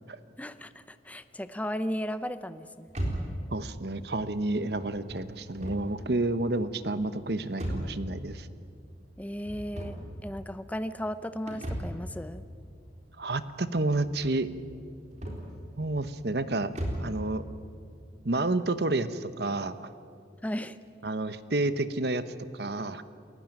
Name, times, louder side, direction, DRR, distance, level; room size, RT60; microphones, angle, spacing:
voice 1, 0.4-2.9 9.2-12.4 20.4-20.8, equal, 10° left, 12 dB, 0.6 m, -35 dB
sound 1, 2.9-17.2, equal, 40° right, 4.0 m, -39 dB
voice 2, 3.5-8.5 13.2-14.5 15.8-16.7 17.0-17.4 18.2-19.9 21.0-22.2 22.5-23.0, right 2 dB, 60° right, 12 dB, 1.0 m, -30 dB
29.0 x 15.5 x 9.1 m, 2.6 s
head